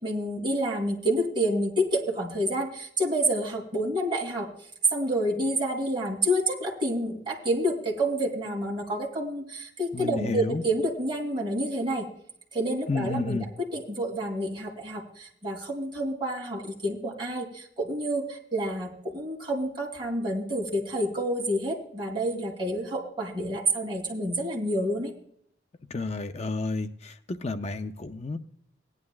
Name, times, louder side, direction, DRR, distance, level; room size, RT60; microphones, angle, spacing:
voice 1, 0.0-4.5 4.9-12.1 12.5-25.1, right 1 dB, 30° right, -2 dB, 3.1 m, -28 dB
voice 2, 9.9-10.6 12.9-13.5 25.9-28.4, left 3 dB, 40° left, 8 dB, 0.5 m, -31 dB
18.5 x 10.5 x 2.3 m, 0.65 s
head